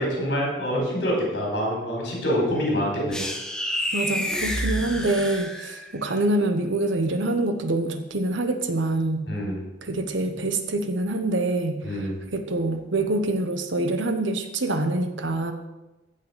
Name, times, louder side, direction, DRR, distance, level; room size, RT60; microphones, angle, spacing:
voice 1, 0.0-3.2 9.3-9.6 11.8-12.2, equal, 65° left, -2 dB, 4.3 m, -26 dB
sound 1, 3.1-6.0, equal, 5° left, 0.9 m, -29 dB
voice 2, 3.9-9.3 9.8-15.5, right 2 dB, 85° right, 7 dB, 1.1 m, -25 dB
14.5 x 5.8 x 5.1 m, 1.1 s
head